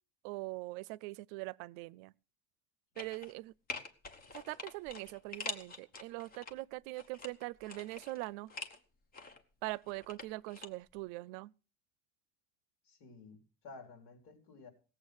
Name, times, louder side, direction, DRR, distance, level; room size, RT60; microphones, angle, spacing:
voice 1, 0.2-2.1 3.0-3.5 4.3-8.5 9.6-11.5, right 21 dB, 80° right, 0.6 m, -42 dB
sound 1, 3.0-3.4 3.7-6.5 7.0-8.8 9.1-10.7 11.0-11.1, left 3 dB, 20° left, 1.1 m, -45 dB
voice 2, 12.9-14.7, left 4 dB, 70° left, 4.2 m, -53 dB
17.5 x 7.7 x 6.4 m
cardioid pair, 175°, 40 cm